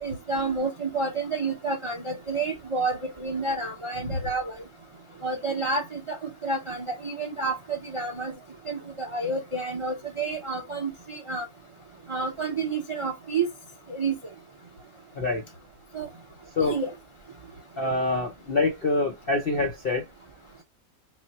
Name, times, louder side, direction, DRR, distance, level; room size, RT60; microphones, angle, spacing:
voice 1, 0.0-4.5 5.2-8.3 8.7-11.4 12.1-13.5 13.9-14.1 15.9-16.1 16.6-16.9, right 3 dB, 50° right, 0.3 m, -29 dB
voice 2, 17.8-20.0, left 2 dB, 60° left, 0.6 m, -25 dB
4.1 x 2.0 x 4.0 m
omnidirectional pair, 1.8 m